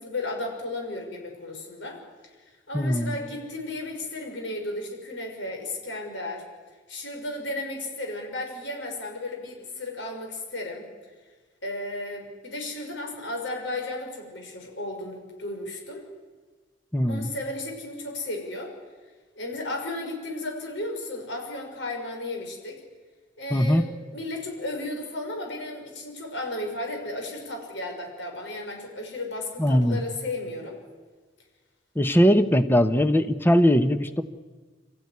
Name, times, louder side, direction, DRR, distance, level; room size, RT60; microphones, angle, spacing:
voice 1, 0.0-2.0 2.7-6.5 6.9-10.9 11.6-16.1 17.1-18.7 19.4-22.8 23.4-30.8, left 2 dB, 75° left, 2 dB, 6.0 m, -34 dB
voice 2, 2.7-3.1 16.9-17.3 23.5-23.8 29.6-30.0 32.0-34.2, equal, 10° left, 10 dB, 1.0 m, -20 dB
26.5 x 14.5 x 9.7 m, 1.4 s
head